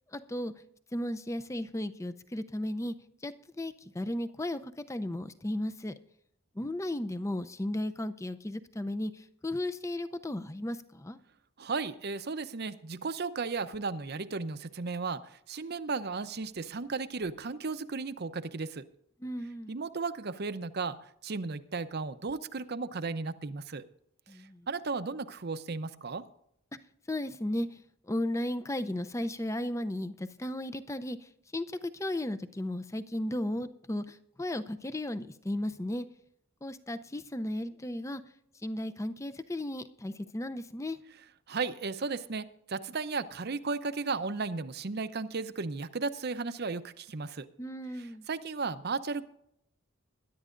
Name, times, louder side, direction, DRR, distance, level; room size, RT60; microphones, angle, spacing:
voice 1, 0.1-0.5 0.9-2.9 3.2-5.9 6.6-11.2 19.2-19.8 24.3-24.7 27.1-27.7 28.1-31.2 31.5-36.1 36.6-38.2 38.6-41.0 47.6-48.3, left 1 dB, 15° left, 11 dB, 0.5 m, -35 dB
voice 2, 11.6-18.8 19.7-23.8 24.4-26.2 41.5-47.5 48.3-49.3, right 4 dB, 50° right, 12 dB, 0.7 m, -35 dB
21.5 x 11.0 x 2.5 m, 0.76 s
head